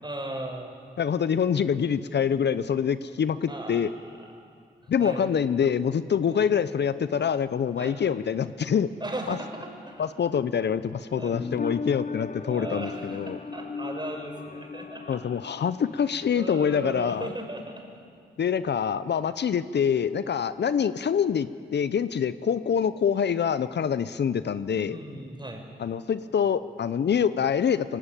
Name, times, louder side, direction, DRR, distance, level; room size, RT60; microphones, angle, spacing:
voice 1, 0.0-0.7 3.5-4.4 4.8-5.3 6.3-6.4 7.8-8.0 9.0-10.1 11.1-11.4 12.4-15.2 16.3-17.9 24.9-25.7, right 1 dB, 25° right, 2 dB, 6.0 m, -37 dB
voice 2, 1.0-3.9 4.9-8.9 9.3-9.4 10.0-13.4 15.1-17.3 18.4-25.0 25.8-28.0, left 7 dB, 65° left, 14 dB, 0.8 m, -25 dB
sound 1, 11.3-16.8 17.1-17.2, left 4 dB, 45° left, 1.2 m, -37 dB
20.0 x 16.5 x 9.2 m, 2.3 s
supercardioid pair, 45°, 19 cm